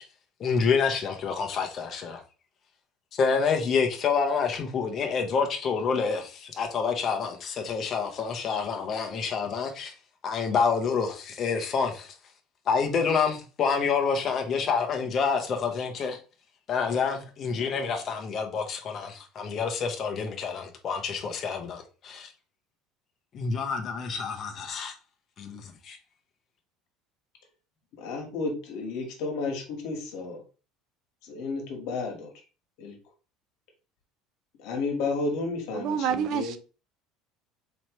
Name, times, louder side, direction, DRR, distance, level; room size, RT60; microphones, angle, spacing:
voice 1, 0.4-2.2 3.2-9.9 10.2-12.1 12.7-16.2 16.7-22.3 23.3-24.9 25.4-26.0, left 5 dB, 30° left, 0.8 m, -28 dB
voice 2, 28.0-30.4 31.2-32.3 32.8-32.9 34.6-36.6, left 3 dB, 65° left, 1.5 m, -32 dB
voice 3, 35.7-36.6, right 8 dB, 45° right, 0.3 m, -28 dB
4.3 x 3.1 x 3.1 m
cardioid pair, 165°, 0 cm